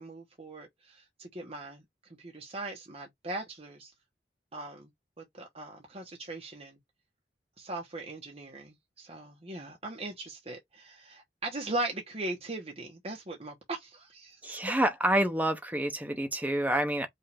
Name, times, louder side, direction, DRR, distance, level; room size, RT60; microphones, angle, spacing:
voice 1, 0.0-1.8 2.2-3.9 4.5-4.9 5.2-6.8 7.6-14.6, right 2 dB, 35° right, 1.3 m, -39 dB
voice 2, 14.4-17.1, right 1 dB, 10° right, 0.9 m, -28 dB
5.5 x 2.8 x 3.4 m
head